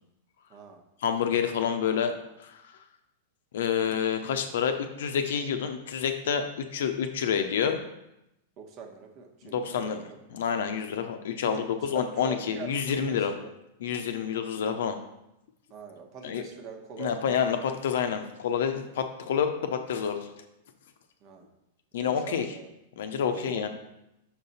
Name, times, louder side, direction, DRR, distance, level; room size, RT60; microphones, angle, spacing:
voice 1, 0.5-0.8 8.6-10.2 11.4-12.8 13.1-13.5 15.7-17.6 21.2-21.5 22.0-22.7 23.2-23.7, right 5 dB, 45° right, 3 dB, 1.1 m, -43 dB
voice 2, 1.0-2.2 2.4-2.6 3.5-7.8 9.4-10.0 10.3-13.3 13.8-15.0 16.2-16.4 17.0-20.2 21.9-22.5 23.0-23.7, left 7 dB, 70° left, 7 dB, 0.7 m, -28 dB
6.0 x 4.0 x 4.1 m, 0.86 s
hypercardioid pair, 100°, 0 cm